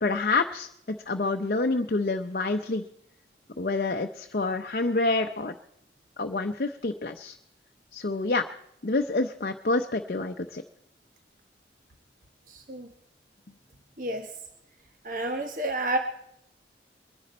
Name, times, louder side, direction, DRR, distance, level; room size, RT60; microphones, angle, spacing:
voice 1, 0.0-2.9 3.6-5.5 6.2-7.4 7.9-8.4 8.8-10.6, left 3 dB, 55° left, 5 dB, 0.6 m, -27 dB
voice 2, 12.5-12.9 14.0-14.3 15.0-16.0, right 2 dB, 45° right, 5 dB, 1.0 m, -30 dB
23.0 x 11.0 x 4.2 m, 0.76 s
head